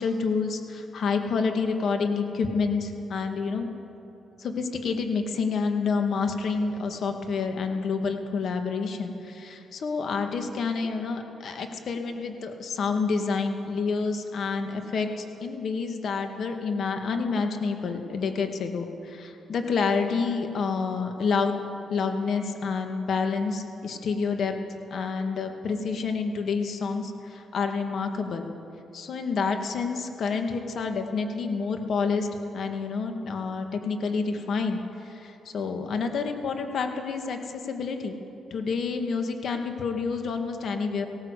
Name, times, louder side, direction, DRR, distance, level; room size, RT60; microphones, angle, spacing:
voice 1, 0.0-3.7 4.4-21.6 21.9-24.5 24.9-28.5 28.9-32.3 32.5-38.2 38.5-41.1, left 5 dB, 65° left, 5 dB, 2.1 m, -28 dB
18.5 x 17.0 x 8.3 m, 2.9 s
cardioid pair, 90°, 0 cm